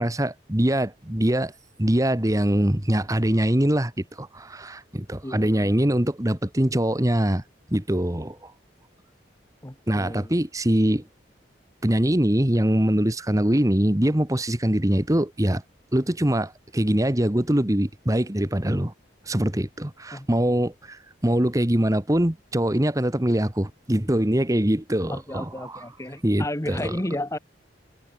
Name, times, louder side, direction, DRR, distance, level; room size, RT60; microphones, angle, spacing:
voice 1, 0.0-1.5 1.8-7.4 7.7-8.5 9.9-11.0 11.8-15.6 15.9-18.9 19.3-25.8 26.2-27.0, right 1 dB, 20° right, 1.4 m, -23 dB
voice 2, 5.2-5.7 9.6-10.3 20.1-20.6 25.1-27.4, left 1 dB, 15° left, 1.6 m, -33 dB
head